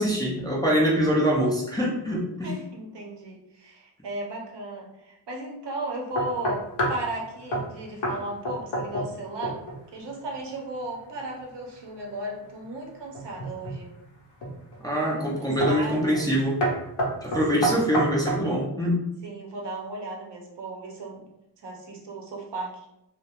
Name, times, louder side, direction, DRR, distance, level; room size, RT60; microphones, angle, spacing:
voice 1, 0.0-2.5 14.8-16.6 17.2-19.0, equal, 10° left, -5 dB, 0.4 m, -24 dB
voice 2, 2.4-9.6 9.9-13.9 15.0-16.2 17.5-17.8 19.2-21.3 21.6-22.9, right 1 dB, 65° right, 0 dB, 0.7 m, -36 dB
sound 1, 6.2-7.1 7.5-7.7 8.0-8.2 8.4-9.2 9.4-9.8 13.1-13.8 14.4-14.8 15.6-15.9 16.1-16.3 16.6-18.5, right 1 dB, 65° left, 0.7 m, -27 dB
2.3 x 2.1 x 2.8 m, 0.84 s
wide cardioid pair, 120°, 46 cm